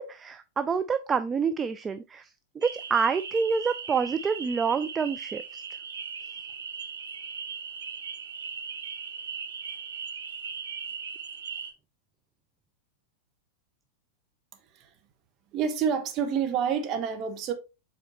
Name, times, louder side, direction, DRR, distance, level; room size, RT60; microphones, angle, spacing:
voice 1, 0.0-2.3 2.6-5.6, right 5 dB, 20° right, 0.4 m, -27 dB
sound 1, 2.6-11.7, right 6 dB, 70° right, 0.9 m, -38 dB
voice 2, 15.5-17.5, right 7 dB, 35° right, 1.2 m, -28 dB
7.6 x 4.2 x 3.0 m
figure-of-eight pair, 90°, 0 cm